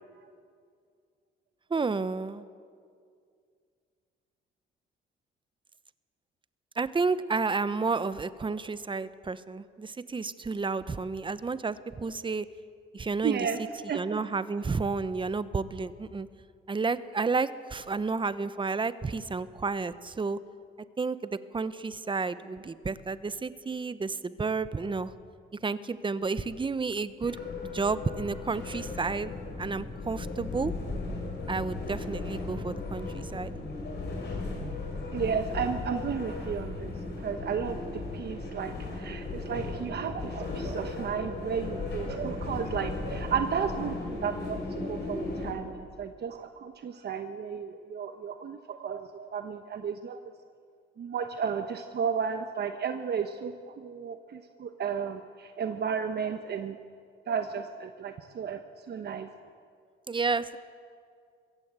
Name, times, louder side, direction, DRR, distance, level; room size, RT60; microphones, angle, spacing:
voice 1, 1.7-2.4 6.8-12.5 12.9-13.5 13.9-16.3 16.7-20.4 21.0-25.1 25.6-27.4 27.7-29.3 29.6-30.7 31.5-33.5 60.1-60.6, right 4 dB, 25° right, 14 dB, 0.9 m, -31 dB
voice 2, 13.2-13.6 13.9-14.2 35.1-50.2 51.0-56.8 57.3-58.6 58.9-59.3, right 7 dB, 55° right, 7 dB, 1.1 m, -33 dB
sound 1, 27.2-45.5, left 3 dB, 60° left, 5.7 m, -36 dB
22.0 x 16.0 x 8.2 m, 2.2 s
cardioid pair, 90°, 20 cm